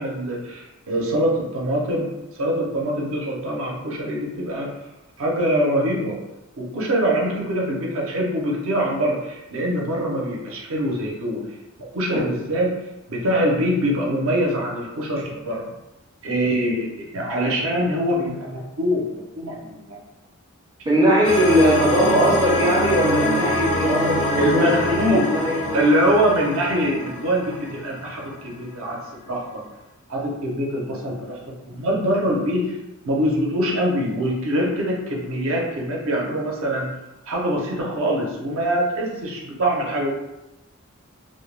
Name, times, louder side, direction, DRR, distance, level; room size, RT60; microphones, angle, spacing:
voice 1, 0.0-2.1 2.4-4.7 5.2-6.2 6.6-11.4 11.8-12.7 13.1-15.7 16.2-20.0 24.4-25.3 25.7-29.0 29.3-29.6 30.1-31.4 31.7-32.6 33.0-36.9 37.3-40.1, equal, 70° right, -2 dB, 0.6 m, -23 dB
voice 2, 20.9-25.9, equal, 20° right, -4 dB, 0.4 m, -20 dB
sound 1, 21.2-28.3, left 1 dB, 80° left, 0.5 m, -25 dB
2.2 x 2.1 x 3.1 m, 0.97 s
head